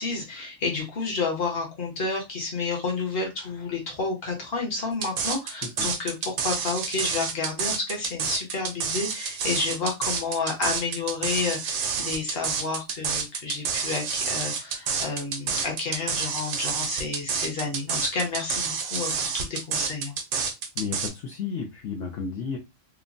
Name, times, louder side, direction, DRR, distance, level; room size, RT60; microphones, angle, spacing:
voice 1, 0.0-20.1, left 4 dB, 50° left, 0 dB, 1.2 m, -30 dB
sound 1, 5.0-21.1, right 6 dB, 70° right, 0.9 m, -29 dB
voice 2, 5.6-5.9 20.7-22.6, left 6 dB, 70° left, 1 dB, 0.9 m, -32 dB
3.1 x 2.2 x 2.5 m, 0.23 s
omnidirectional pair, 1.3 m